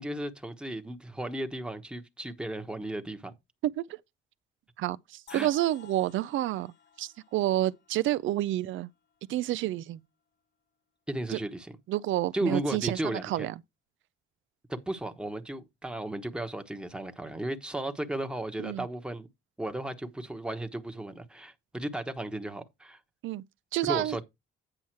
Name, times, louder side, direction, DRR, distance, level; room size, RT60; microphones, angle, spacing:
voice 1, 0.0-3.3 5.3-5.5 11.1-11.7 12.3-13.5 14.7-19.3 19.6-23.0 23.8-24.2, right 1 dB, 5° right, 1.1 m, -35 dB
voice 2, 4.8-6.7 7.0-8.9 9.3-10.0 11.3-11.4 11.9-13.5 18.6-18.9 23.2-23.4 23.7-24.2, right 14 dB, 75° right, 0.5 m, -29 dB
sound 1, 5.3-9.2, left 8 dB, 65° left, 1.3 m, -55 dB
8.9 x 5.6 x 4.5 m
cardioid pair, 90°, 20 cm